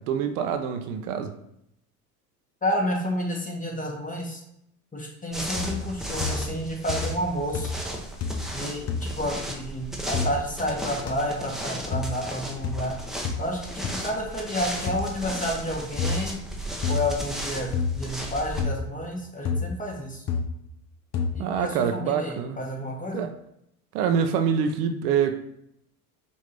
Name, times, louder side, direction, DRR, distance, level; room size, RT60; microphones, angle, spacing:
voice 1, 0.0-1.3 21.4-22.6 23.1-23.3 23.9-25.4, right 7 dB, 75° right, 0.6 m, -25 dB
voice 2, 2.6-4.4 4.9-7.7 8.5-12.9 13.4-16.4 16.9-20.2 21.3-23.2, equal, 15° left, 1.3 m, -30 dB
sound 1, 5.3-18.7, right 1 dB, ahead, 0.7 m, -35 dB
sound 2, 5.6-5.9 6.2-6.6 6.9-7.3 7.5-7.9 8.2-8.5 8.9-9.1 10.1-10.3 11.1-11.2 11.9-12.1 12.6-12.8 13.2-13.4 13.8-13.9 14.9-15.0 16.0-16.2 16.8-17.1 17.7-18.0 18.6-18.8 19.5-19.7 20.3-20.5 21.1-21.4, left 5 dB, 35° left, 0.6 m, -28 dB
5.2 x 2.6 x 3.3 m
hypercardioid pair, 85°, 44 cm